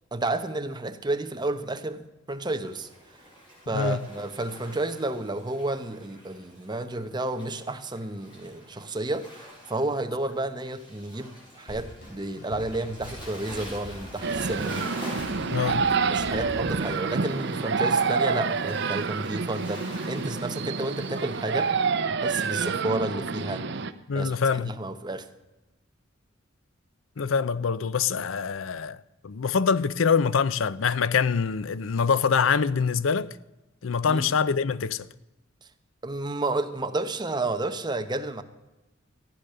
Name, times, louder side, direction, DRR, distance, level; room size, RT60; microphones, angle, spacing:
voice 1, 0.1-2.9 3.7-15.2 16.1-21.7 22.1-23.7 24.1-25.3 34.1-34.3 36.0-38.4, right 2 dB, 20° right, 0.9 m, -31 dB
Waves surf, 2.4-21.9, equal, 25° left, 6.7 m, -47 dB
Drum kit, 11.7-17.0, equal, 55° left, 5.4 m, -43 dB
sound 1, 14.2-23.9, right 5 dB, 60° right, 0.7 m, -28 dB
voice 2, 15.5-15.9 24.1-24.8 27.2-29.0 29.2-33.3 33.8-35.1, left 6 dB, 85° left, 0.5 m, -24 dB
14.5 x 10.0 x 6.7 m
head